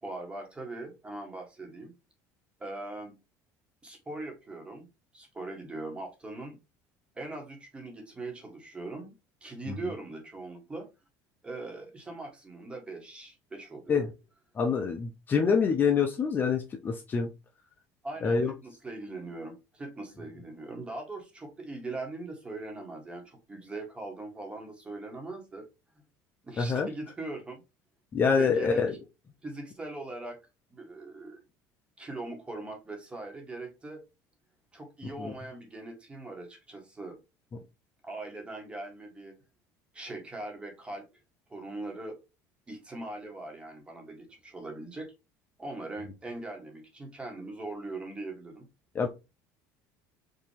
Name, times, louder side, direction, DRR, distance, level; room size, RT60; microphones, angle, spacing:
voice 1, 0.0-1.9 2.6-3.2 3.8-4.9 5.1-6.5 7.1-9.1 9.4-10.9 11.4-14.1 18.0-25.7 26.4-27.6 28.3-28.8 29.4-30.4 30.7-31.4 32.0-34.0 34.7-37.2 38.0-39.3 39.9-41.1 41.5-42.2 42.7-45.1 45.6-48.7, right 2 dB, 15° right, 1.7 m, -41 dB
voice 2, 14.6-17.3 18.2-18.5 26.6-26.9 28.1-28.9 35.2-35.3 49.0-49.1, left 5 dB, 25° left, 0.6 m, -26 dB
5.4 x 2.9 x 3.3 m
cardioid pair, 140°, 7 cm